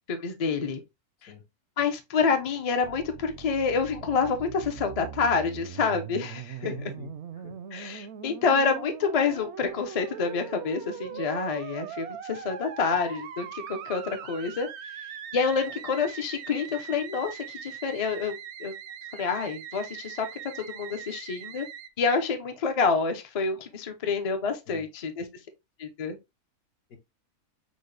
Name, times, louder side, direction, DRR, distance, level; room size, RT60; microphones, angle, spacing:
voice 1, 0.1-0.8 1.2-1.3 1.8-6.6 7.7-14.7 15.3-18.3 18.6-18.7 19.1-20.3 20.5-21.7 22.0-25.3 25.8-26.2, left 5 dB, 45° left, 0.4 m, -28 dB
Musical instrument, 2.8-21.9, right 9 dB, 65° right, 0.7 m, -41 dB
voice 2, 6.6-7.6 24.7-24.8 26.9-27.0, left 5 dB, 75° left, 1.8 m, -43 dB
6.3 x 2.2 x 3.2 m
omnidirectional pair, 1.6 m